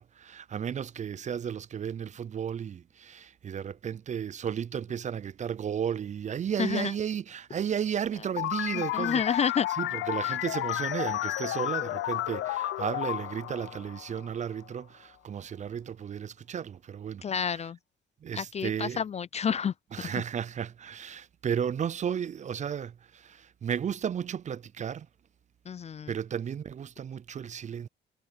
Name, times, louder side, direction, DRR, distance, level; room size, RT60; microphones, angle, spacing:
voice 1, 0.0-9.5 9.8-17.7 18.2-19.0 19.9-25.1 26.1-27.9, right 8 dB, 35° right, 0.4 m, -34 dB
voice 2, 6.6-6.9 8.7-9.7 10.2-10.3 17.2-17.8 18.3-20.1 25.7-26.1, left 7 dB, 35° left, 0.4 m, -30 dB
sound 1, 8.4-14.6, left 15 dB, 85° left, 0.7 m, -32 dB
sound 2, 10.7-12.2, left 1 dB, ahead, 2.6 m, -49 dB
cardioid pair, 90°, 20 cm